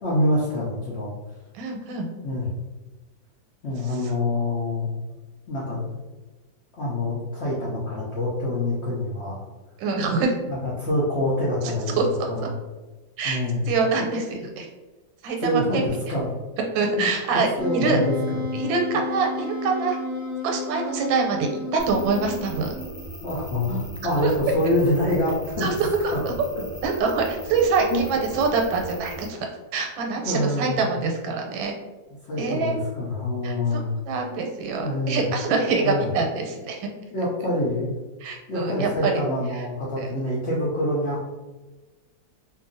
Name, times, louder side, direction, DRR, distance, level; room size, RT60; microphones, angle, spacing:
voice 1, 0.0-1.1 2.2-2.5 3.6-4.9 5.5-6.0 6.7-9.4 10.5-12.0 12.3-12.5 13.2-13.6 15.4-16.3 17.0-17.1 17.6-18.4 23.2-25.7 26.1-26.2 27.9-28.1 30.2-30.9 32.3-33.9 34.7-35.3 35.6-36.1 37.1-38.0 38.5-41.2, left 1 dB, 75° left, -7 dB, 0.6 m, -26 dB
voice 2, 1.5-2.1 9.8-10.3 11.9-12.5 13.2-13.4 13.7-14.7 15.2-15.9 16.7-17.5 17.7-18.0 18.5-20.0 20.4-22.7 24.2-24.3 25.6-26.3 26.8-29.4 29.7-31.7 32.4-32.8 33.4-33.8 34.1-36.9 38.2-39.1 40.0-40.1, right 4 dB, 90° right, 2 dB, 1.3 m, -25 dB
Wind instrument woodwind instrument, 17.6-23.0, left 2 dB, 50° left, 0.8 m, -32 dB
sound 1, 21.8-29.3, equal, 15° left, 0.8 m, -39 dB
2.8 x 2.6 x 2.5 m, 1.2 s
omnidirectional pair, 2.0 m